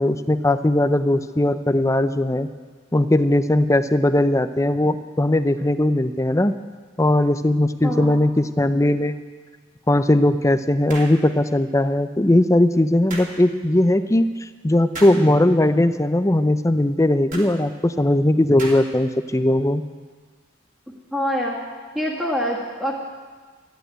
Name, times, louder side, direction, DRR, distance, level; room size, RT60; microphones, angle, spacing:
voice 1, 0.0-2.5 2.9-6.5 7.0-9.2 9.9-14.3 14.6-19.8, left 1 dB, 15° left, 11 dB, 0.5 m, -19 dB
voice 2, 7.8-8.2 21.1-21.6 21.9-22.9, equal, 5° right, -6 dB, 1.8 m, -25 dB
sound 1, 10.9-11.2 13.1-13.3 14.9-15.2 17.3-17.5 18.6-19.0, right 2 dB, 40° right, 2.8 m, -34 dB
14.0 x 10.0 x 9.2 m, 1.4 s
head